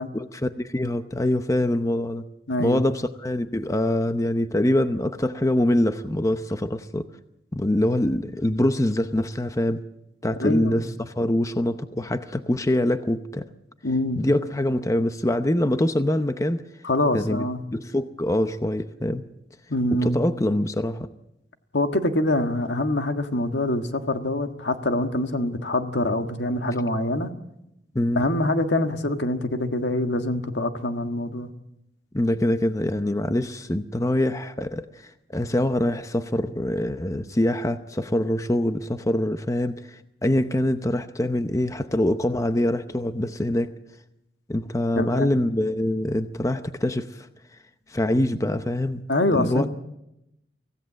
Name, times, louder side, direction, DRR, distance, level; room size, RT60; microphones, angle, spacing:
voice 1, 0.1-2.2 2.6-7.1 7.5-9.8 10.2-13.5 14.2-16.6 17.1-17.4 17.7-19.2 20.0-21.1 27.9-28.2 32.1-43.7 44.5-47.3 47.9-49.0 49.3-49.7, left 1 dB, 20° left, 9 dB, 0.7 m, -24 dB
voice 2, 2.5-2.8 10.4-10.8 13.8-14.2 16.8-17.6 19.7-20.2 21.7-27.3 28.1-31.5 44.9-45.3 49.1-49.7, left 1 dB, 80° left, 6 dB, 1.6 m, -25 dB
25.0 x 16.5 x 7.5 m, 0.86 s
head